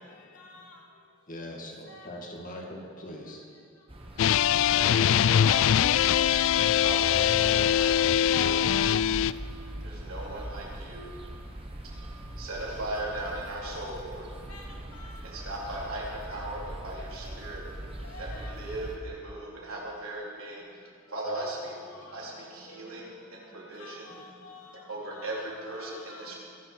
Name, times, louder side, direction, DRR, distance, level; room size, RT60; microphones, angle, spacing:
voice 1, 0.0-1.3 1.9-2.7 3.7-3.9 8.9-10.0 10.3-10.4 11.1-12.2 14.5-15.5 16.0-16.3 17.2-18.8 19.1-19.7 20.7-20.8 21.1-26.4, left 2 dB, 85° left, 2.4 m, -52 dB
voice 2, 1.3-3.5, left 1 dB, 40° left, 2.2 m, -41 dB
sound 1, 3.9-19.0, right 1 dB, 25° right, 1.4 m, -41 dB
sound 2, 4.2-9.3, left 10 dB, 65° left, 0.3 m, -22 dB
voice 3, 4.8-5.7 6.8-8.6 9.8-11.1 12.4-14.3 15.2-17.6 18.2-20.6 21.1-21.7 22.1-24.1 24.7-26.4, right 1 dB, 75° right, 3.8 m, -38 dB
22.5 x 8.0 x 6.3 m
head